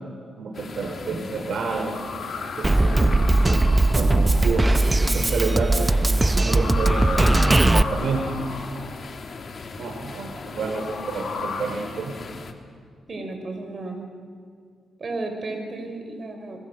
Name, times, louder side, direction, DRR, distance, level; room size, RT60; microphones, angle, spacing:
voice 1, 0.4-2.0 2.6-4.7 5.1-6.0 6.3-8.4 9.8-12.1, right 4 dB, 75° right, 3 dB, 3.0 m, -29 dB
sound 1, 0.5-12.5, left 4 dB, 50° left, 2.5 m, -39 dB
sound 2, 1.9-4.5 6.2-8.9 10.4-11.6, left 4 dB, 75° left, 4.6 m, -34 dB
Drum kit, 2.6-7.8, right 2 dB, 20° right, 0.8 m, -19 dB
voice 2, 13.1-14.0 15.0-16.7, right 2 dB, 45° right, 4 dB, 5.7 m, -33 dB
30.0 x 21.5 x 7.7 m, 2.1 s
cardioid pair, 80°, 0 cm